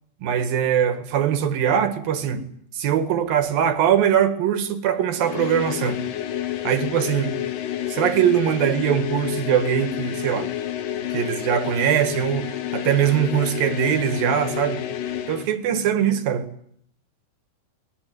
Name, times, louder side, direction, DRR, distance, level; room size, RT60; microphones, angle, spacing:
voice 1, 0.2-2.4 2.7-6.0 6.6-7.3 7.9-10.5 11.1-14.9 15.3-16.5, right 9 dB, 65° right, 3.5 m, -22 dB
sound 1, 5.2-15.5, left 11 dB, 65° left, 3.0 m, -29 dB
22.5 x 20.5 x 9.5 m
omnidirectional pair, 4.7 m